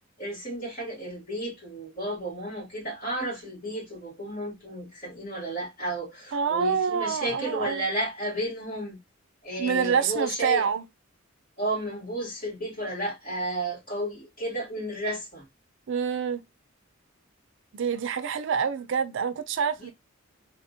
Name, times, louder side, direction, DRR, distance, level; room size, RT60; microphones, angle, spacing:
voice 1, 0.2-9.0 9.4-10.6 11.6-15.4 19.8-19.9, right 1 dB, 45° left, 2.5 m, -32 dB
voice 2, 6.3-7.8 9.6-10.9 15.9-16.4 17.7-19.9, right 6 dB, 60° right, 0.4 m, -26 dB
3.5 x 2.8 x 2.7 m
head